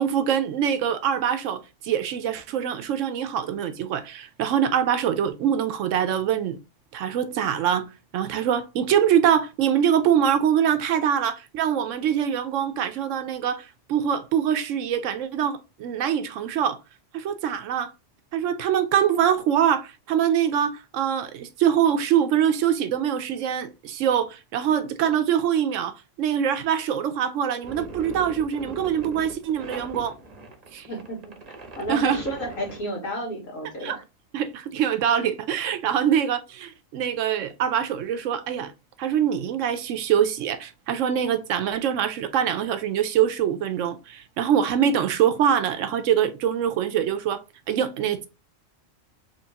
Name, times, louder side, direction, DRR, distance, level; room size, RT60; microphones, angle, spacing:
voice 1, 0.0-6.6 6.9-7.9 8.1-16.8 17.1-17.9 18.3-30.1 30.7-30.9 31.9-32.2 33.8-34.0 34.3-38.7 39.0-47.4 47.7-48.3, right 9 dB, 75° right, 0.9 m, -24 dB
sound 1, 27.6-32.8, right 3 dB, 35° right, 0.8 m, -40 dB
voice 2, 30.9-31.2 31.8-34.0, equal, 80° left, 2.1 m, -31 dB
4.4 x 3.1 x 2.8 m
omnidirectional pair, 1.4 m